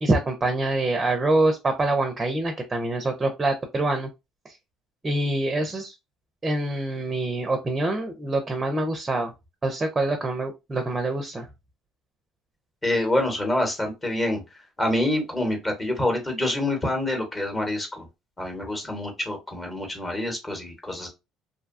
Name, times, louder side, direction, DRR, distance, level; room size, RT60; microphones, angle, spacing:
voice 1, 0.0-4.1 4.5-4.6 5.0-5.9 6.4-9.3 9.6-11.5, right 2 dB, 20° right, 4 dB, 0.5 m, -25 dB
voice 2, 12.8-18.0 18.4-21.1, left 1 dB, 20° left, 3 dB, 1.1 m, -26 dB
2.6 x 2.2 x 2.5 m, 0.23 s
supercardioid pair, 95°, 0 cm